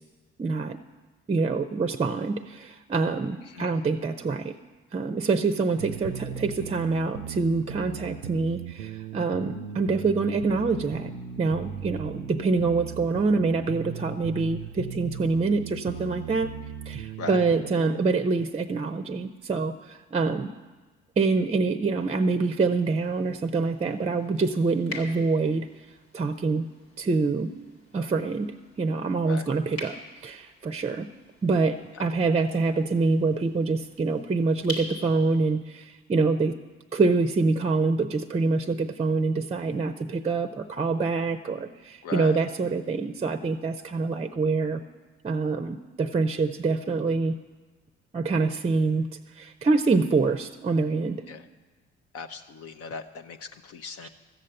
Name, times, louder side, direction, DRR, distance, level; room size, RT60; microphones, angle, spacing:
voice 1, 0.4-0.8 1.3-4.5 4.9-11.1 11.4-16.5 16.9-20.5 21.2-25.7 26.1-26.7 27.0-27.5 27.9-31.1 31.4-36.5 36.9-44.8 45.2-47.4 48.1-49.1 49.3-51.2 54.0-54.1, right 4 dB, 20° right, 9 dB, 0.6 m, -26 dB
voice 2, 3.5-3.8 17.2-17.4 29.3-29.5 42.0-42.4 51.3-51.4 52.1-54.1, left 4 dB, 50° left, 8 dB, 0.7 m, -38 dB
sound 1, 5.8-18.0, right 8 dB, 80° right, 0.6 m, -38 dB
sound 2, 22.0-35.5, left 1 dB, 85° left, 1.9 m, -45 dB
13.5 x 7.5 x 7.9 m, 1.3 s
figure-of-eight pair, 50°, 31 cm